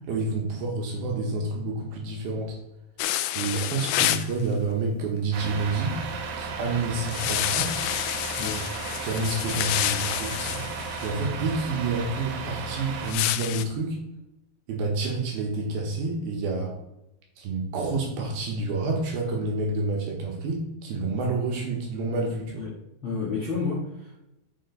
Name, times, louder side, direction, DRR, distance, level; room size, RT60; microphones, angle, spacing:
voice 1, 0.1-2.6 3.3-5.9 6.4-7.8 9.0-10.7 11.0-14.0 14.7-16.8 17.4-22.6, right 3 dB, 65° right, 0 dB, 2.9 m, -29 dB
sound 1, 3.0-4.3 7.1-11.1 13.1-13.7, left 13 dB, 85° left, 2.8 m, -28 dB
Truck, 5.3-13.1, right 4 dB, 85° right, 1.7 m, -34 dB
voice 2, 22.6-24.2, left 4 dB, 50° left, -5 dB, 1.5 m, -31 dB
8.7 x 5.4 x 4.0 m, 0.92 s
omnidirectional pair, 5.0 m